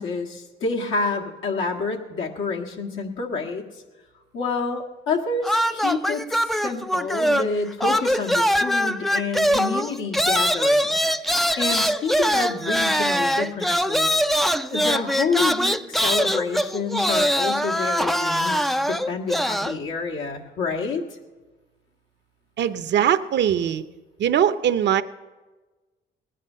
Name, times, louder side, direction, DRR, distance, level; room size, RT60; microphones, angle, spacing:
voice 1, 0.0-3.7 4.3-11.0 11.2-14.2 14.7-21.0, left 4 dB, 80° left, 0 dB, 1.8 m, -28 dB
sound 1, 5.4-7.6 7.8-19.8, equal, ahead, 0.4 m, -22 dB
voice 2, 22.6-23.8 24.2-25.0, right 9 dB, 60° right, 12 dB, 0.7 m, -21 dB
18.5 x 10.0 x 5.6 m, 1.2 s
cardioid pair, 90°, 20 cm